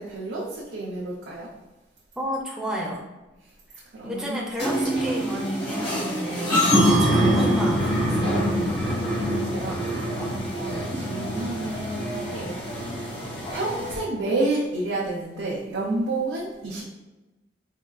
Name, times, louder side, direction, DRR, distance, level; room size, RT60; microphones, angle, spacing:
voice 1, 0.0-1.5 3.9-4.4 9.3-9.8 10.3-12.6 13.5-16.8, right 2 dB, 85° right, -5 dB, 0.5 m, -30 dB
voice 2, 2.2-3.0 4.0-8.8 10.8-11.0, equal, 5° right, -3 dB, 0.4 m, -31 dB
sound 1, 4.6-14.0, equal, 80° left, 1.2 m, -25 dB
3.6 x 2.2 x 2.3 m, 1.1 s
head